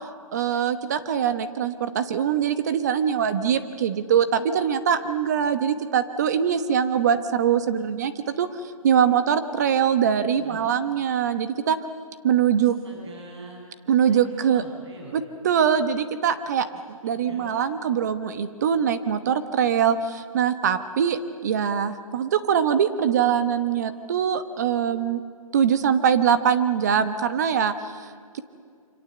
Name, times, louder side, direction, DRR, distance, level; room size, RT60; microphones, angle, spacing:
voice 1, 0.3-11.8 12.2-12.7 13.9-14.6 15.1-16.7 17.0-25.2 25.5-28.4, right 8 dB, 30° right, 11 dB, 1.1 m, -23 dB
voice 2, 10.4-10.7 12.6-13.6 14.1-15.2 17.0-17.5, right 1 dB, 50° right, 0 dB, 7.9 m, -44 dB
27.0 x 25.5 x 7.9 m, 2.1 s
hypercardioid pair, 160°, 18 cm